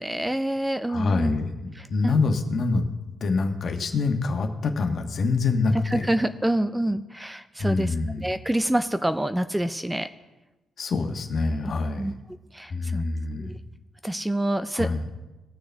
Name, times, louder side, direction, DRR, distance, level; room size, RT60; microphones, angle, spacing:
voice 1, 0.0-1.3 1.8-2.2 5.9-10.1 11.6-11.7 12.0-12.1 12.5-13.0 14.0-14.9, right 1 dB, 10° right, 11 dB, 0.4 m, -27 dB
voice 2, 0.9-2.9 3.2-6.0 7.6-8.3 10.8-12.0 12.7-13.5 14.7-15.0, left 4 dB, 50° left, 5 dB, 1.3 m, -25 dB
19.5 x 6.5 x 3.5 m, 1.1 s
cardioid pair, 90°, 0 cm